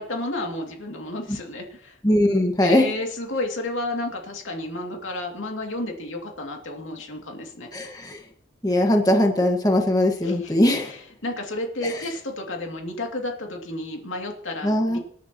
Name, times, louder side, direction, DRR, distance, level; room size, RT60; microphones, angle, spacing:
voice 1, 0.0-1.9 2.6-7.7 10.2-10.6 10.8-15.0, left 2 dB, 90° left, 1 dB, 2.6 m, -31 dB
voice 2, 2.0-2.8 7.7-8.2 8.6-10.9 14.6-15.0, left 1 dB, 20° left, 2 dB, 1.6 m, -20 dB
25.5 x 10.5 x 3.0 m, 0.66 s
head